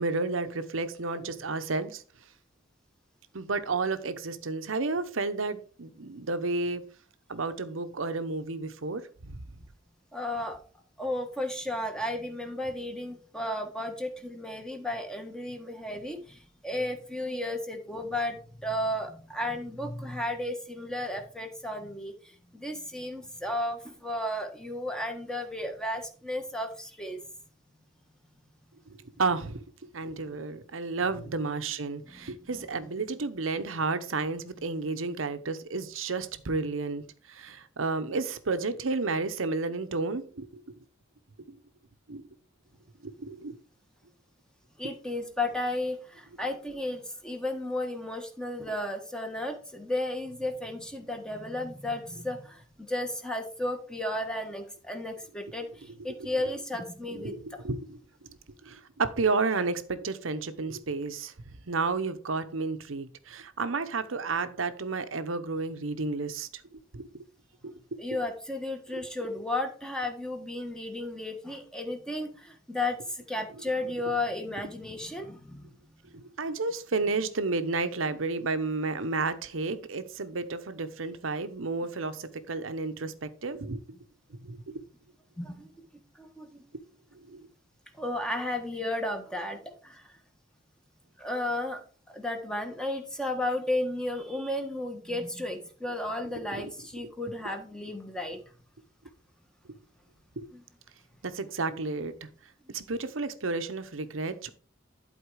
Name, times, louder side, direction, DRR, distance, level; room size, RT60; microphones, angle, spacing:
voice 1, 0.0-2.0 3.3-6.8 7.3-9.4 29.2-29.6 29.9-40.8 41.5-41.6 42.1-42.3 43.0-43.6 57.1-58.0 58.6-61.3 61.7-66.5 66.9-67.1 67.6-67.8 76.1-83.8 84.4-84.7 87.1-87.5 96.5-96.7 100.4-100.5 101.2-102.3 102.7-104.5, right 3 dB, 85° right, 0.9 m, -31 dB
voice 2, 10.1-10.6 11.0-27.2 32.1-32.7 44.8-57.6 68.0-75.7 85.4-85.7 86.1-86.6 87.9-90.2 91.2-91.8 92.1-98.4 100.5-100.6 101.7-101.8, left 1 dB, 5° left, 1.4 m, -34 dB
11.5 x 4.4 x 4.8 m
head